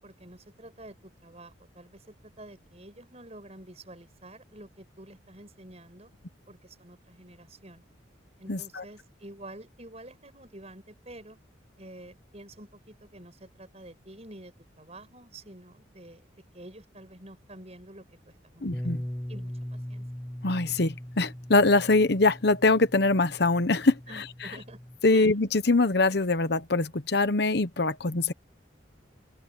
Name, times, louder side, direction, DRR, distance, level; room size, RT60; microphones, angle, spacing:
voice 1, 0.0-6.1 6.5-7.8 8.4-11.4 11.8-16.3 16.5-18.9 19.3-20.0 24.1-24.8 25.1-25.3, right 1 dB, 35° right, 6.2 m, -48 dB
voice 2, 8.5-8.8 18.6-19.0 20.4-24.2 25.0-28.3, left 3 dB, 55° left, 1.0 m, -23 dB
Bass guitar, 18.7-25.0, equal, 10° left, 1.4 m, -40 dB
head